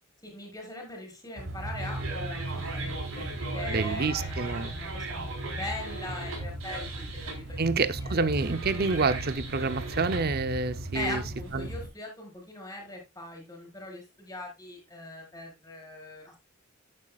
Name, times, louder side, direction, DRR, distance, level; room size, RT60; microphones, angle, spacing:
voice 1, 0.2-8.2 10.9-16.4, left 2 dB, 15° left, 4.8 m, -41 dB
sound 1, 1.4-11.9, right 2 dB, 85° right, 3.9 m, -35 dB
voice 2, 3.6-4.7 7.6-11.2 11.5-11.7, right 4 dB, 50° right, 0.7 m, -28 dB
11.0 x 9.9 x 2.4 m
head